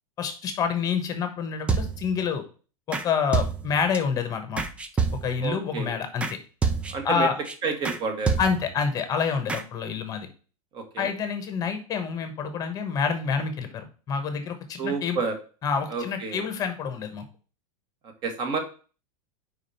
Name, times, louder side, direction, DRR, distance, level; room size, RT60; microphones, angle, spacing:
voice 1, 0.2-2.4 2.9-4.6 5.2-6.4 7.0-7.3 8.4-10.3 11.0-15.2 15.6-17.2, left 6 dB, 20° left, 7 dB, 1.1 m, -27 dB
sound 1, 1.7-2.2 2.9-3.1 3.3-4.0 4.6-5.5 6.2-6.4 6.6-7.1 7.5-7.6 7.8-8.0 8.3-8.8 9.5-9.6, right 5 dB, 5° right, 0.3 m, -27 dB
voice 2, 5.4-6.0 6.9-7.3 7.6-8.3 10.7-11.1 14.8-15.4 15.9-16.4 18.2-18.6, right 4 dB, 25° right, 5 dB, 1.4 m, -30 dB
5.0 x 4.9 x 5.5 m, 0.36 s
supercardioid pair, 165°, 19 cm